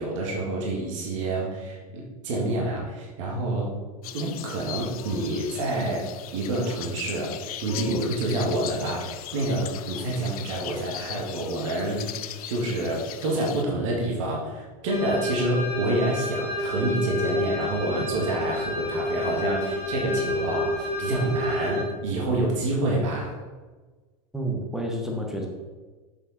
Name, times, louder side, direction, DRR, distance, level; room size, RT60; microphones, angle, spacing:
voice 1, 0.0-3.7 4.1-7.3 7.6-23.4, right 1 dB, 55° right, -2 dB, 1.8 m, -28 dB
sound 1, 4.0-13.6, left 12 dB, 70° left, 0.5 m, -39 dB
sound 2, 14.9-21.8, left 1 dB, 30° right, 1.7 m, -29 dB
voice 2, 24.3-25.5, right 1 dB, ahead, 1 dB, 0.8 m, -29 dB
7.2 x 5.1 x 4.1 m, 1.3 s
supercardioid pair, 160°, 20 cm